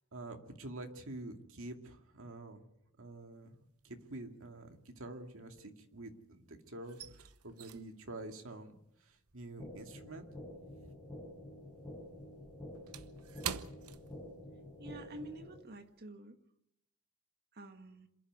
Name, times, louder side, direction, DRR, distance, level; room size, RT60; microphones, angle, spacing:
voice 1, 0.1-2.7 3.0-3.6 3.8-8.8 9.1-10.3 10.7-10.9, right 2 dB, 65° right, 4 dB, 2.3 m, -47 dB
sound 1, 3.4-4.0 4.2-6.2 6.5-11.2 11.5-14.8 15.1-15.3 15.8-16.0, right 8 dB, 80° right, 1.0 m, -48 dB
sound 2, 9.6-15.6, left 1 dB, 10° left, 6.5 m, -49 dB
voice 2, 14.8-16.4 17.5-18.1, right 2 dB, 45° right, 6 dB, 1.9 m, -49 dB
27.0 x 11.0 x 9.5 m, 0.77 s
head